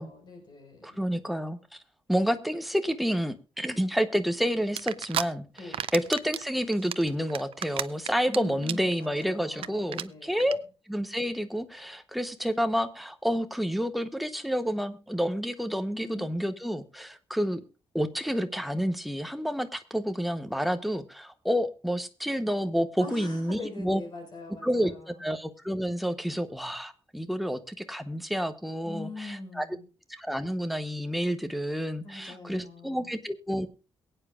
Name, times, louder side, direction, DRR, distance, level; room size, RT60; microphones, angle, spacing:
voice 1, 0.0-1.0 5.6-5.8 8.3-10.6 15.9-16.2 23.0-25.2 28.8-29.8 32.0-33.1, left 2 dB, 45° left, 3 dB, 4.6 m, -43 dB
voice 2, 0.8-1.8 2.1-10.6 10.9-17.6 17.9-24.0 24.6-29.7 30.1-33.7, equal, ahead, 9 dB, 0.8 m, -29 dB
sound 1, 4.8-5.2 5.6-6.4 6.7-8.4 8.6-8.9 9.2-9.3 9.5-9.7 9.9-10.0 10.4-10.5, right 10 dB, 70° right, 0.5 m, -31 dB
22.5 x 9.0 x 2.4 m, 0.33 s
wide cardioid pair, 180°, 10 cm